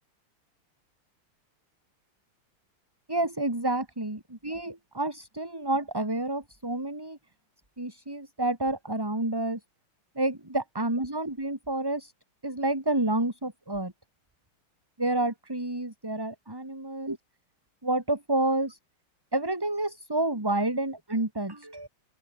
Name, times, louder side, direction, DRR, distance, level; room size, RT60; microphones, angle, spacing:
voice 1, 3.1-7.2 7.8-9.6 10.2-12.1 12.4-13.9 15.0-17.2 17.8-18.8 19.3-21.9, right 2 dB, 10° right, 2.6 m, -29 dB
open air
omnidirectional pair, 2.4 m